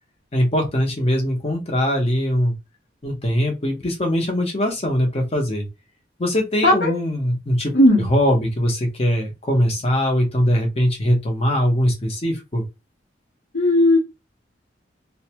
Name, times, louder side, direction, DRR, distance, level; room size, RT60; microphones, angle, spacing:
voice 1, 0.3-2.5 3.0-5.7 6.2-12.6, equal, 35° left, 0.8 m, -21 dB
voice 2, 6.6-7.0 7.7-8.0 13.5-14.0, left 1 dB, 70° left, 0.9 m, -15 dB
2.6 x 2.1 x 2.8 m
head